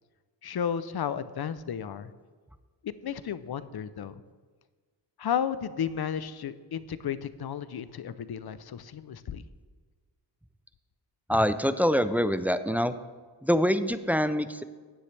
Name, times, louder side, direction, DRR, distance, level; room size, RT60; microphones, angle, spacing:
voice 1, 0.4-2.1 2.8-4.2 5.2-9.4, left 8 dB, 55° left, 14 dB, 0.6 m, -33 dB
voice 2, 11.3-13.0 13.4-14.6, equal, 5° right, 12 dB, 0.4 m, -25 dB
15.0 x 9.9 x 3.3 m, 1.5 s
wide cardioid pair, 95°, 44 cm